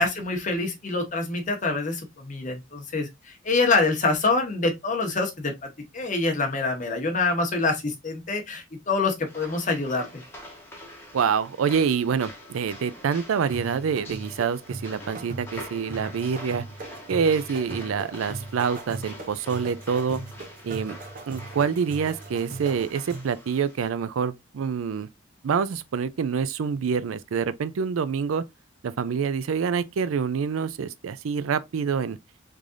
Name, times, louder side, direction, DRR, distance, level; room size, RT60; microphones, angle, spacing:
voice 1, 0.0-5.5 5.9-10.1, left 3 dB, 40° left, 1.0 m, -25 dB
sound 1, 9.3-23.9, left 1 dB, 10° left, 1.0 m, -45 dB
voice 2, 11.1-16.6 17.1-20.2 20.6-21.0 21.3-25.1 25.4-28.4 28.8-32.2, right 6 dB, 85° right, 0.4 m, -26 dB
sound 2, 13.5-23.4, right 2 dB, 40° right, 0.7 m, -39 dB
3.6 x 3.3 x 2.5 m
head